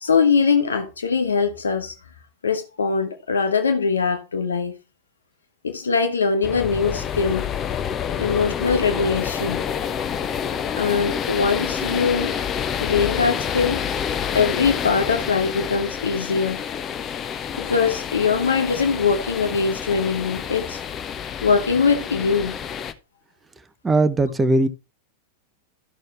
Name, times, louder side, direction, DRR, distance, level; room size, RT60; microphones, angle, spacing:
voice 1, 0.0-1.9 2.4-4.7 5.6-7.5 8.2-9.7 10.8-12.3 12.8-14.0 14.3-16.6 17.6-20.8 21.4-22.5, left 5 dB, 70° left, 1.1 m, -22 dB
sound 1, 6.4-22.9, left 8 dB, 25° left, 0.8 m, -28 dB
voice 2, 23.8-24.7, right 2 dB, 15° right, 0.7 m, -18 dB
12.5 x 6.6 x 3.2 m
figure-of-eight pair, 90°, 0 cm